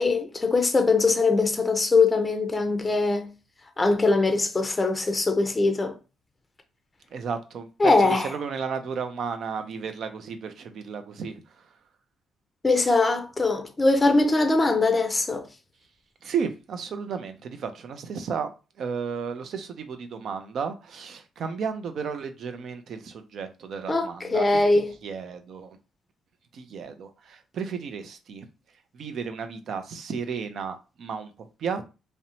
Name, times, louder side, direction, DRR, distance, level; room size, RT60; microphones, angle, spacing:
voice 1, 0.0-3.3 3.8-5.9 7.8-8.3 12.6-15.5 23.9-24.9, left 3 dB, 20° left, 0.5 m, -22 dB
voice 2, 7.1-11.7 16.2-18.5 18.8-24.5 24.7-25.8 26.5-28.5 28.9-31.8, right 6 dB, 65° right, 0.4 m, -33 dB
2.6 x 2.1 x 2.9 m
cardioid pair, 90°, 0 cm